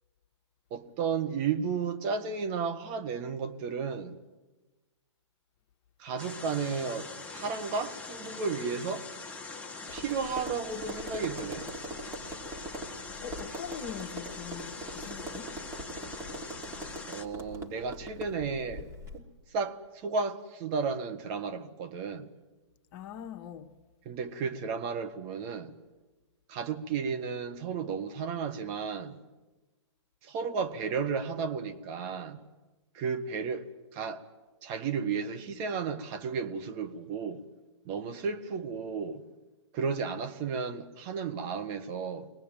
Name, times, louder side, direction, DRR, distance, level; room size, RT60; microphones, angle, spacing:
voice 1, 0.7-4.2 6.0-9.1 9.9-11.7 17.1-22.3 24.1-25.8 26.5-29.2 30.2-32.4 32.9-34.3 34.6-37.4 37.9-39.2 39.7-42.3, right 5 dB, 35° right, 1.7 m, -33 dB
sound 1, 6.2-17.2, left 4 dB, 10° left, 1.6 m, -43 dB
Tap, 9.9-19.2, right 1 dB, 15° right, 3.1 m, -42 dB
voice 2, 13.2-15.5 22.9-23.7, left 8 dB, 40° left, 1.3 m, -42 dB
23.5 x 19.5 x 9.0 m
hypercardioid pair, 130°, 16 cm